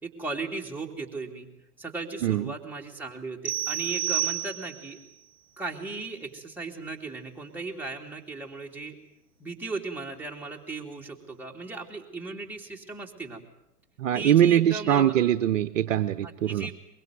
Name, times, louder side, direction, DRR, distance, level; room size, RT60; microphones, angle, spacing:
voice 1, 0.0-1.5 1.8-5.0 5.6-9.0 9.4-13.4 14.1-15.2 16.2-16.7, right 3 dB, 5° right, -1 dB, 2.9 m, -36 dB
voice 2, 2.2-2.5 14.0-16.7, right 11 dB, 50° right, 11 dB, 0.9 m, -22 dB
sound 1, 3.5-5.0, right 12 dB, 25° right, 1.6 m, -30 dB
23.0 x 22.5 x 9.3 m, 0.83 s
figure-of-eight pair, 105°, 48 cm